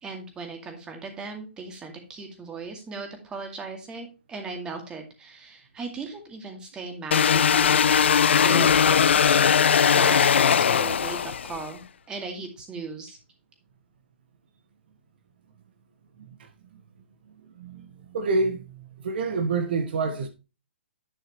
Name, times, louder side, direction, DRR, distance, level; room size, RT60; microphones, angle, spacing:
voice 1, 0.0-9.5 9.8-11.8 12.1-13.2, right 4 dB, 15° right, 2.1 m, -37 dB
sound 1, 7.1-11.7, left 7 dB, 70° left, 0.4 m, -19 dB
voice 2, 16.2-16.8 17.6-20.3, right 3 dB, 55° right, 1.2 m, -28 dB
10.5 x 5.7 x 3.0 m
hypercardioid pair, 140°, 6 cm